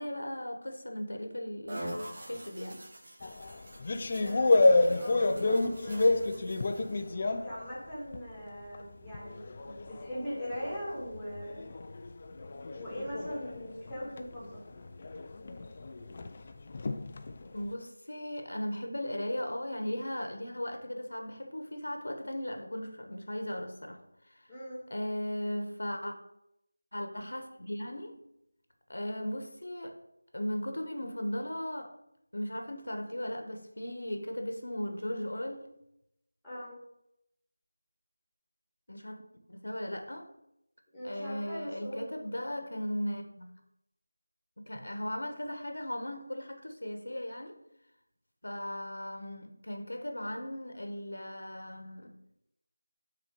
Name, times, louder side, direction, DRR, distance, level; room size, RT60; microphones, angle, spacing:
voice 1, 0.0-2.8 4.6-5.0 5.4-5.6 17.5-24.0 24.3-24.5 24.9-26.1 26.9-28.2 28.9-30.0 30.3-31.9 32.3-35.7 38.9-39.2 39.5-40.3 41.0-43.5 44.6-47.6 48.4-52.2, equal, 80° left, 5 dB, 1.1 m, -37 dB
sound 1, 1.7-7.1, right 1 dB, 40° right, 1.0 m, -45 dB
sound 2, 3.2-8.4 8.7-17.7, left 2 dB, 30° left, 0.4 m, -30 dB
voice 2, 4.2-6.4 7.3-11.7 12.7-14.6 24.5-24.8 36.4-36.8 40.9-42.1, equal, ahead, -8 dB, 1.8 m, -41 dB
6.0 x 3.8 x 5.2 m, 0.82 s
figure-of-eight pair, 175°, 0 cm